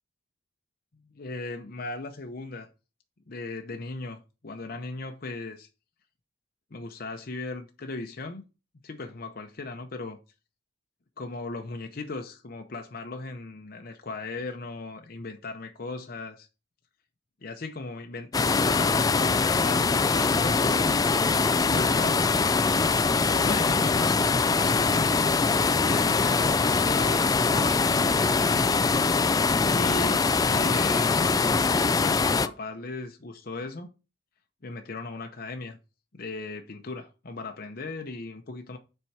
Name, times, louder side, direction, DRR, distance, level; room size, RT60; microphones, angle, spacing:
voice 1, 1.1-2.7 3.3-5.7 6.7-8.4 8.8-10.2 11.2-16.5 17.4-21.2 21.7-22.3 23.2-25.2 25.8-28.7 29.6-31.5 32.0-33.9 34.6-35.8 36.1-38.8, left 3 dB, 50° left, 0.7 m, -37 dB
sound 1, 18.3-32.5, left 4 dB, 20° left, 0.3 m, -23 dB
7.0 x 4.5 x 4.7 m
head